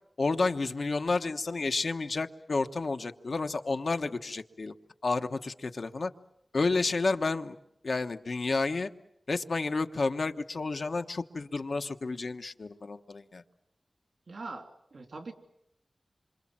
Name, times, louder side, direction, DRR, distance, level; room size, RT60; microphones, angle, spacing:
voice 1, 0.2-4.7 5.0-6.1 6.5-7.6 7.8-8.9 9.3-13.4, left 3 dB, 70° left, 7 dB, 1.2 m, -30 dB
voice 2, 14.3-15.3, right 3 dB, 80° right, 5 dB, 3.0 m, -42 dB
27.5 x 26.5 x 7.5 m, 0.79 s
wide cardioid pair, 95°, 0 cm